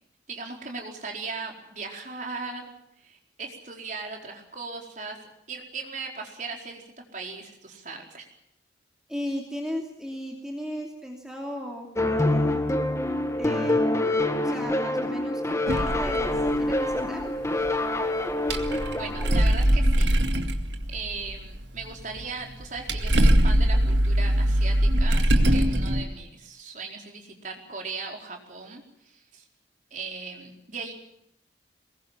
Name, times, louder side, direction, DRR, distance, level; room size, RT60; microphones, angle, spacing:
voice 1, 0.3-8.3 18.9-20.1 20.9-29.4 29.9-30.9, right 4 dB, 45° right, 2 dB, 4.5 m, -38 dB
voice 2, 9.1-12.7 13.4-14.0 14.4-17.2, equal, 5° right, 0 dB, 2.8 m, -36 dB
sound 1, 12.0-19.4, left 1 dB, 15° left, 1.7 m, -26 dB
sound 2, 15.7-17.2 17.7-17.8 18.3-22.2 22.5-26.0, equal, 75° right, 2.1 m, -22 dB
22.5 x 20.5 x 7.4 m, 0.79 s
head